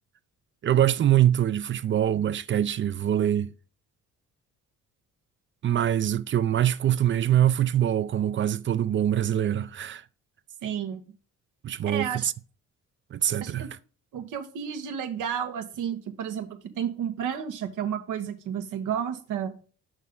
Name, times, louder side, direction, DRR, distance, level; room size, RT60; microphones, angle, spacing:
voice 1, 0.6-3.5 5.6-10.0 11.6-12.3 13.1-13.8, right 11 dB, 40° right, 0.4 m, -24 dB
voice 2, 10.6-11.0 11.8-12.3 13.4-13.7 14.1-19.5, right 8 dB, 85° right, 1.2 m, -32 dB
6.4 x 5.3 x 3.6 m
cardioid pair, 90°, 30 cm